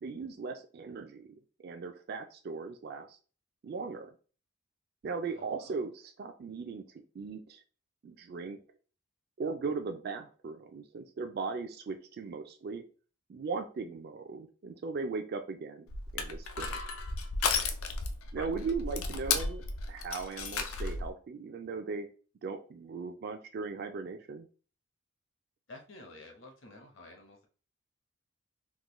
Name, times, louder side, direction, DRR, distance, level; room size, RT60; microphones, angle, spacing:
voice 1, 0.0-1.3 1.6-3.2 3.6-4.1 5.0-6.8 7.2-7.6 8.0-8.6 9.4-12.8 13.3-15.9 16.1-16.7 18.3-19.6 19.9-22.1 22.4-24.5, right 4 dB, 50° right, 5 dB, 0.3 m, -38 dB
voice 2, 5.3-5.8 18.3-18.5 25.7-27.5, left 2 dB, 60° left, 3 dB, 0.9 m, -50 dB
Crushing, 15.9-21.1, left 4 dB, 80° left, 0.5 m, -34 dB
3.6 x 2.2 x 3.0 m, 0.37 s
head